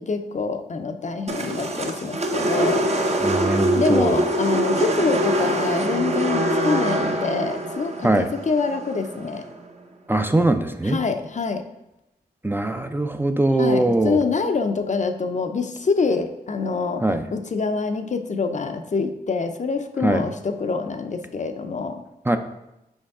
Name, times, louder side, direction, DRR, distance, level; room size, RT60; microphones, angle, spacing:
voice 1, 0.0-2.8 3.7-9.4 10.8-11.6 13.6-17.0 17.3-22.0, left 4 dB, 50° left, 7 dB, 0.6 m, -25 dB
sound 1, 1.3-9.5, right 1 dB, 45° right, 0.8 m, -24 dB
voice 2, 3.2-4.2 8.0-8.3 10.1-11.0 12.4-14.2 17.0-17.3 20.0-20.2 22.3-22.4, right 2 dB, 15° right, 7 dB, 0.4 m, -21 dB
5.3 x 5.1 x 3.5 m, 0.89 s
cardioid pair, 60°, 16 cm